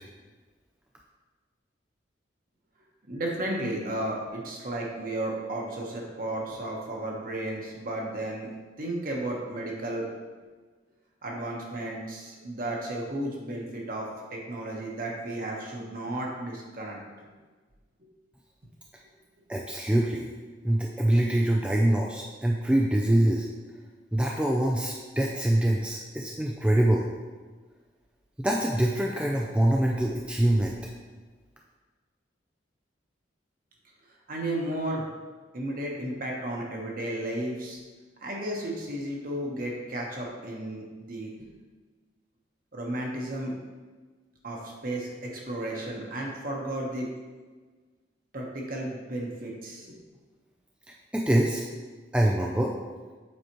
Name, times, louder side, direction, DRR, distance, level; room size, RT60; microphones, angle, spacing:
voice 1, 3.1-8.5 8.8-10.1 11.2-17.3 34.3-35.1 35.5-37.8 38.2-41.3 42.7-43.6 44.4-47.1 48.3-50.0, right 1 dB, 45° right, -1 dB, 1.1 m, -33 dB
voice 2, 19.5-20.3 20.6-23.5 24.1-27.1 28.4-30.7 50.9-51.7 52.1-52.7, right 1 dB, 5° right, -1 dB, 0.3 m, -24 dB
7.6 x 4.8 x 3.0 m, 1.4 s
head